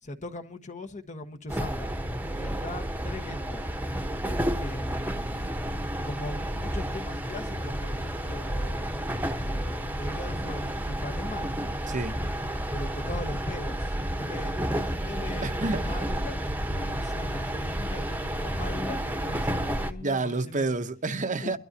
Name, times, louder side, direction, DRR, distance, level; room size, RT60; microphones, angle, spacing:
voice 1, 0.0-2.0 2.3-3.6 4.6-5.6 6.0-8.9 9.3-11.5 12.7-15.5 15.8-20.8 21.4-21.6, left 2 dB, 35° left, 1.4 m, -40 dB
sound 1, 1.5-19.9, right 1 dB, 10° right, 1.2 m, -31 dB
voice 2, 11.9-12.2 15.4-16.0 20.0-21.6, right 3 dB, 35° right, 0.8 m, -29 dB
22.5 x 13.0 x 2.8 m
head